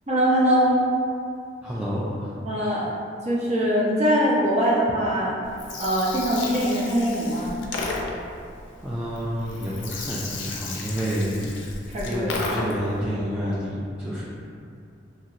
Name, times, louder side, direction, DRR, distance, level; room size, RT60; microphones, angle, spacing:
voice 1, 0.1-0.8 2.4-2.9 3.2-5.3 5.8-7.6 11.9-12.3, equal, 35° right, -6 dB, 0.6 m, -22 dB
voice 2, 1.6-2.4 8.8-11.5 12.0-14.3, equal, 5° right, -9 dB, 0.3 m, -29 dB
Gurgling, 5.4-13.0, left 3 dB, 75° left, 0.4 m, -34 dB
2.9 x 2.8 x 2.4 m, 2.4 s
head